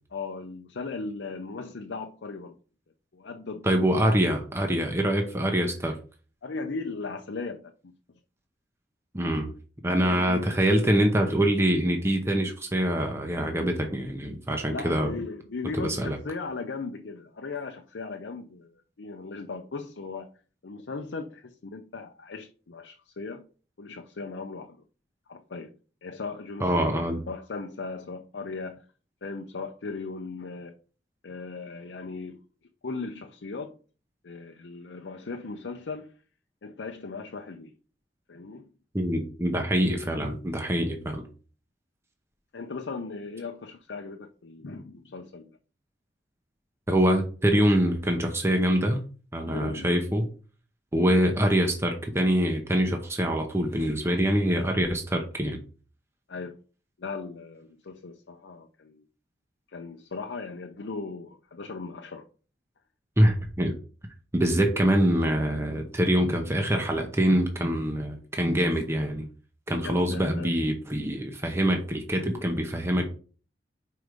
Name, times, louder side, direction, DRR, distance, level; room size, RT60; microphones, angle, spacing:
voice 1, 0.1-2.6 3.1-4.2 6.4-7.9 10.0-10.4 14.7-20.3 20.6-23.4 23.8-24.8 25.3-25.7 26.0-27.0 27.3-28.8 29.2-30.8 31.2-32.4 32.8-33.7 34.2-36.1 36.6-37.7 38.3-38.7 39.9-40.0 42.5-45.6 49.4-50.0 56.3-56.6 57.0-59.0 59.7-62.3 69.8-70.5, left 4 dB, 85° left, 0.6 m, -37 dB
voice 2, 3.6-6.0 9.1-9.5 9.8-15.1 15.7-16.2 26.6-27.2 38.9-41.3 46.9-49.0 49.3-50.2 50.9-55.6 63.2-63.7 64.3-69.3 69.7-73.0, equal, 15° right, 0.8 m, -24 dB
5.2 x 4.7 x 5.0 m
head